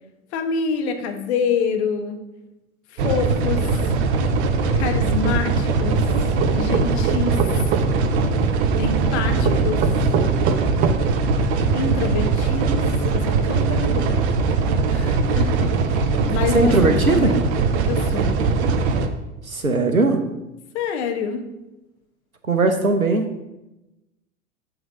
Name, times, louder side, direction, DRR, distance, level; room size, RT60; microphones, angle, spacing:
voice 1, 0.3-2.2 2.9-3.7 4.7-6.0 6.5-7.4 8.8-9.8 11.7-12.9 13.1-14.2 14.9-17.4 17.8-18.4 20.7-21.4, left 5 dB, 50° left, 6 dB, 1.2 m, -26 dB
sound 1, 3.0-19.1, right 4 dB, 50° right, 0.9 m, -21 dB
sound 2, 6.4-7.8 9.4-11.0, right 9 dB, 20° right, 0.4 m, -24 dB
voice 2, 9.3-10.6 16.5-17.3 19.5-20.2 22.5-23.3, right 3 dB, 90° right, 6 dB, 0.9 m, -20 dB
7.9 x 4.0 x 6.3 m, 0.97 s
figure-of-eight pair, 85°, 41 cm